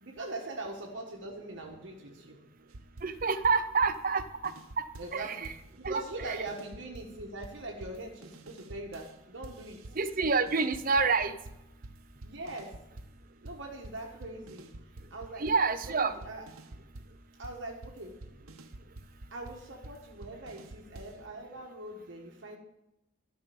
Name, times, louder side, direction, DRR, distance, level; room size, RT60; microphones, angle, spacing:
voice 1, 0.0-2.4 5.0-9.8 12.2-12.7 13.4-14.7 15.1-15.5 15.9-16.4 17.4-18.1 19.3-22.6, right 2 dB, 60° right, 0 dB, 1.3 m, -42 dB
sound 1, 2.7-5.2 5.4-9.1 9.4-13.2 13.4-21.2, right 2 dB, 85° right, 1.0 m, -48 dB
voice 2, 3.0-4.5 5.1-5.5 5.8-6.0 6.3-6.4 10.0-11.3 15.4-16.1, right 4 dB, 40° right, 11 dB, 0.7 m, -28 dB
12.5 x 5.5 x 7.0 m, 0.91 s
head